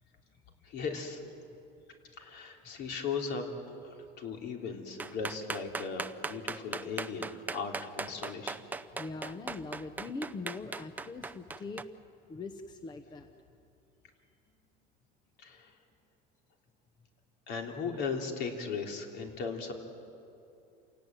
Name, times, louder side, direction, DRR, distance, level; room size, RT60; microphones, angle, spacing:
voice 1, 0.6-1.2 2.2-8.6 15.4-15.8 17.5-19.7, left 5 dB, 55° left, 2 dB, 3.2 m, -37 dB
sound 1, 5.0-11.8, right 3 dB, 10° right, 0.5 m, -38 dB
voice 2, 8.9-11.9 12.3-13.3, left 3 dB, 20° left, 7 dB, 0.9 m, -41 dB
28.0 x 17.5 x 9.2 m, 2.7 s
cardioid pair, 155°, 20 cm